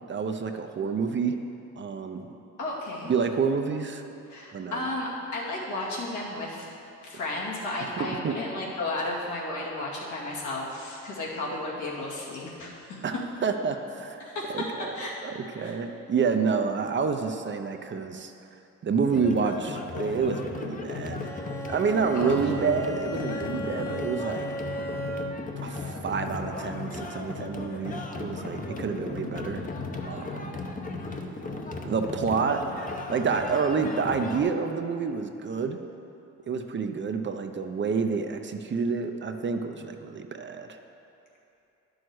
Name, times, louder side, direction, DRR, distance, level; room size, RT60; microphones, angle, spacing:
voice 1, 0.1-1.3 1.8-2.3 3.1-4.0 4.5-4.9 8.0-8.4 13.0-15.0 15.2-18.3 18.8-21.4 21.7-24.5 25.6-29.6 30.1-30.5 31.8-35.8 36.5-40.7, right 5 dB, 40° right, 6 dB, 0.6 m, -28 dB
voice 2, 2.6-3.1 4.3-6.6 7.0-13.0 14.2-15.1 15.6-15.7 22.1-22.4, left 2 dB, 75° left, -4 dB, 2.1 m, -33 dB
sound 1, 19.1-34.4, left 3 dB, 25° left, 0.9 m, -36 dB
Bowed string instrument, 21.2-25.6, right 1 dB, 10° left, 1.2 m, -36 dB
10.5 x 6.3 x 4.8 m, 2.8 s
cardioid pair, 90°, 30 cm